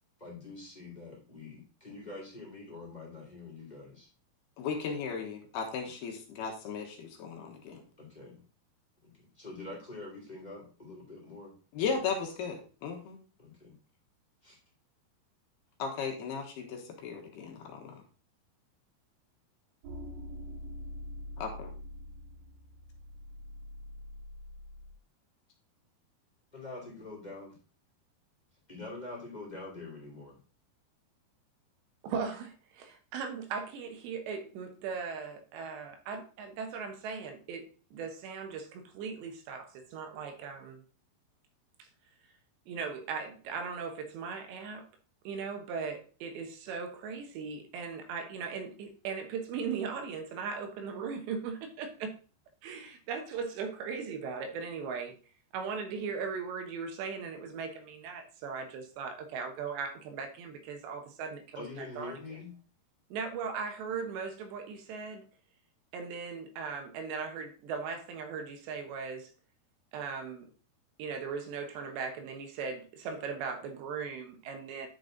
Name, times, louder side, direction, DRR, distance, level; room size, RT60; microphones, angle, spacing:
voice 1, 0.2-4.1 5.8-6.2 8.0-8.4 9.0-11.5 11.8-12.0 13.4-13.8 14.4-14.6 26.5-27.6 28.7-30.4 61.5-62.5, left 3 dB, 15° left, 2.1 m, -45 dB
voice 2, 4.6-7.8 11.7-13.2 15.8-18.0 21.4-21.7, left 5 dB, 70° left, 3.2 m, -36 dB
sound 1, 19.8-24.9, left 1 dB, 65° right, 2.9 m, -44 dB
voice 3, 32.0-37.6 37.9-40.8 41.8-41.9 42.7-44.9 45.2-52.1 52.6-55.1 55.5-62.2 63.1-65.3 65.9-69.3 69.9-70.5 71.0-74.9, right 5 dB, 85° right, 3.4 m, -38 dB
10.5 x 5.2 x 3.9 m
omnidirectional pair, 4.9 m